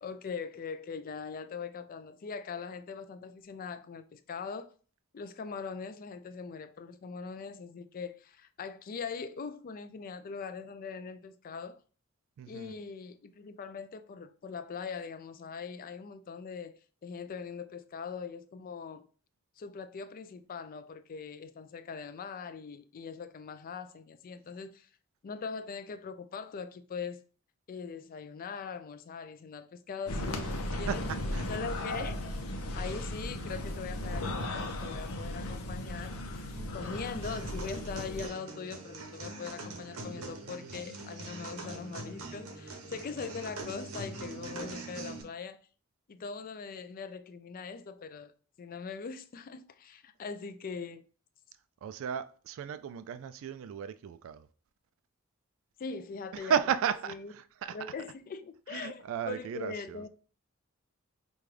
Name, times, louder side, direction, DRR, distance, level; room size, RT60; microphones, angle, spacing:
voice 1, 0.0-4.7 5.1-11.8 12.5-19.1 19.6-24.9 25.2-27.2 27.7-31.0 31.5-32.2 32.7-36.2 36.7-45.6 46.1-48.3 48.6-51.0 55.8-56.5 57.1-57.3 57.7-60.1, left 5 dB, 40° left, 0.4 m, -41 dB
voice 2, 12.4-12.8 30.9-31.0 31.3-31.5 36.5-36.8 51.8-54.5 56.3-57.8 58.7-60.0, right 7 dB, 65° right, 0.3 m, -34 dB
sound 1, 30.1-38.3, left 1 dB, 85° left, 0.7 m, -36 dB
sound 2, 37.2-45.2, right 2 dB, 80° right, 0.9 m, -43 dB
5.2 x 2.3 x 3.2 m
head